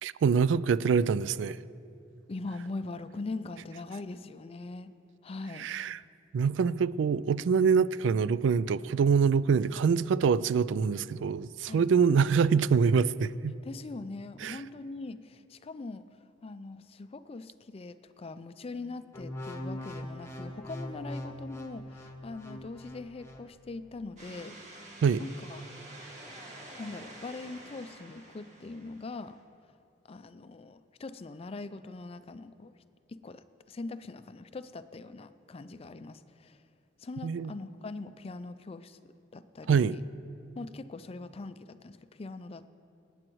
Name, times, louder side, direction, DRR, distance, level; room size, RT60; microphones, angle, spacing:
voice 1, 0.0-1.6 5.6-6.0 6.3-13.5 14.4-14.6 25.0-25.2 37.2-37.5 39.7-39.9, right 6 dB, 80° right, 18 dB, 0.3 m, -25 dB
voice 2, 2.3-4.9 5.2-5.7 11.6-11.9 13.6-16.0 16.4-24.9 25.2-25.6 26.8-29.4 30.0-32.7 33.1-36.6 37.0-40.0 40.6-42.7, left 3 dB, 30° left, 12 dB, 0.4 m, -42 dB
sound 1, 19.1-23.5 24.0-24.2, left 1 dB, 15° left, 1.0 m, -41 dB
sound 2, 24.2-29.4, right 1 dB, 40° right, 2.0 m, -48 dB
26.0 x 8.8 x 3.1 m, 2.5 s
head